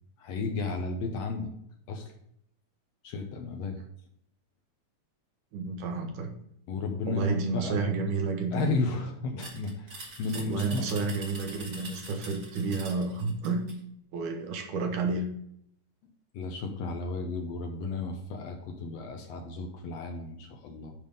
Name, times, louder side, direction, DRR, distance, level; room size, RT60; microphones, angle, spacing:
voice 1, 0.2-1.5 1.9-2.1 3.0-3.8 6.7-8.1 8.5-10.9 16.3-20.9, left 3 dB, 70° left, 4 dB, 1.7 m, -33 dB
voice 2, 5.5-6.4 7.0-8.7 10.3-13.6 14.1-15.3, right 4 dB, 90° right, 2 dB, 2.7 m, -30 dB
sound 1, 9.4-13.8, right 2 dB, 60° right, 0.7 m, -44 dB
9.7 x 3.5 x 5.3 m, 0.72 s
omnidirectional pair, 3.5 m